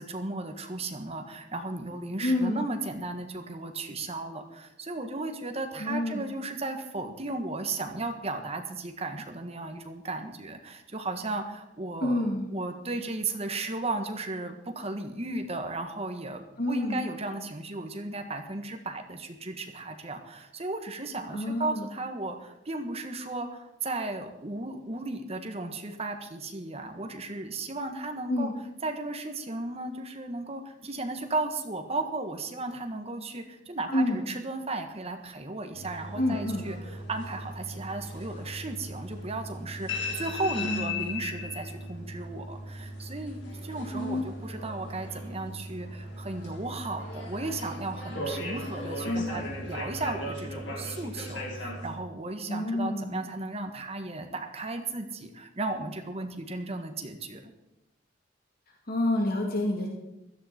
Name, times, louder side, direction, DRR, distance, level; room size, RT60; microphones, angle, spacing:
voice 1, 0.0-28.5 28.8-36.8 37.1-57.5, right 2 dB, 35° right, 6 dB, 1.6 m, -35 dB
voice 2, 2.2-2.6 5.8-6.2 12.0-12.5 16.6-17.0 21.3-21.9 28.3-28.5 33.9-34.2 36.2-36.7 40.6-41.0 43.9-44.2 49.0-49.4 52.5-53.2 58.9-59.9, left 1 dB, 55° left, 0 dB, 2.3 m, -28 dB
sound 1, 35.7-51.9, left 1 dB, 80° left, 4.1 m, -38 dB
16.5 x 13.5 x 4.5 m, 0.94 s
head